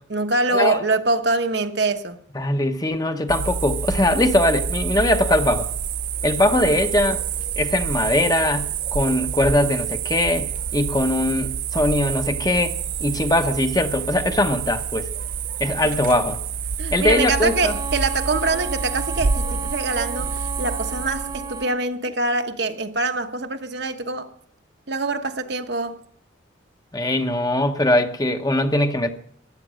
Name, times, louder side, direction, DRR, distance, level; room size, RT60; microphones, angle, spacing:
voice 1, 0.1-2.2 6.7-6.8 16.8-24.3 24.9-26.0, right 3 dB, 60° right, 1.2 m, -24 dB
voice 2, 2.3-5.7 6.2-7.2 7.6-12.7 13.0-15.1 15.6-16.4 16.9-17.8 26.9-29.1, left 1 dB, 20° left, 1.0 m, -21 dB
sound 1, 3.3-21.6, right 6 dB, 45° right, 0.5 m, -28 dB
Bowed string instrument, 17.0-21.8, right 3 dB, 20° right, 1.0 m, -35 dB
15.5 x 11.0 x 6.3 m
head